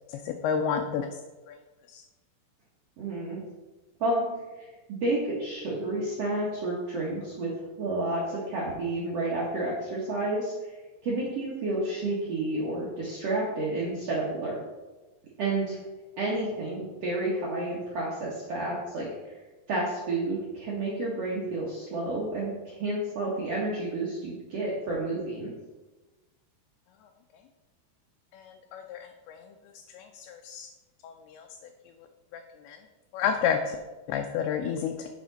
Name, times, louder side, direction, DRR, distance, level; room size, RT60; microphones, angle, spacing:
voice 1, 0.1-1.1 1.5-1.6 1.9-2.0 28.3-29.5 29.9-30.7 31.0-31.5 32.3-32.8 33.1-33.8 34.1-35.1, left 7 dB, 85° left, 4 dB, 2.4 m, -31 dB
voice 2, 3.0-3.4 4.0-4.3 4.6-4.7 5.0-7.5 7.8-10.7 11.0-14.6 15.4-15.8 16.2-19.1 19.7-25.5, right 2 dB, 80° right, -5 dB, 1.4 m, -30 dB
8.3 x 4.9 x 3.9 m, 1.2 s
omnidirectional pair, 4.7 m